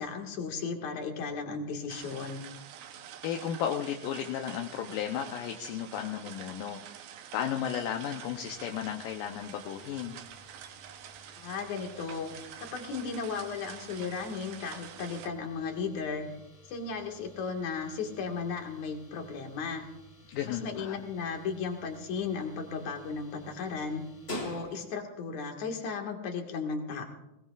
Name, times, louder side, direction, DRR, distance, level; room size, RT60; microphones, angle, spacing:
voice 1, 0.0-2.4 11.4-12.3 12.6-16.3 16.7-19.9 20.4-24.0 24.4-27.1, left 5 dB, 60° left, 2 dB, 3.0 m, -35 dB
sound 1, 1.9-15.3, right 9 dB, 90° right, 2.8 m, -47 dB
voice 2, 3.2-10.2 20.3-21.0, left 9 dB, 75° left, 3 dB, 2.4 m, -34 dB
sound 2, 8.3-25.2, left 1 dB, 40° left, 0.9 m, -50 dB
20.0 x 20.0 x 2.5 m, 0.93 s
omnidirectional pair, 4.1 m